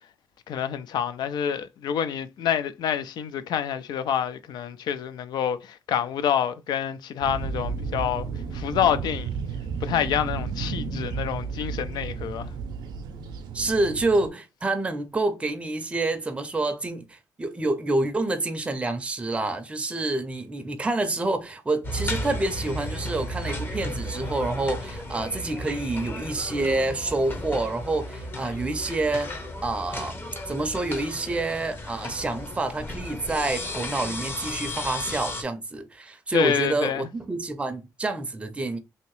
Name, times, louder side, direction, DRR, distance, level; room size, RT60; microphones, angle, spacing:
voice 1, 0.5-8.3 8.5-9.4 9.8-12.5 36.3-37.1, left 9 dB, 75° left, 0.4 m, -27 dB
sound 1, 7.2-14.3, right 5 dB, 90° right, 0.5 m, -33 dB
voice 2, 13.5-38.8, right 2 dB, 15° right, 0.5 m, -28 dB
sound 2, 21.8-35.4, left 1 dB, 30° left, 0.7 m, -34 dB
2.8 x 2.8 x 3.1 m
cardioid pair, 105°, 7 cm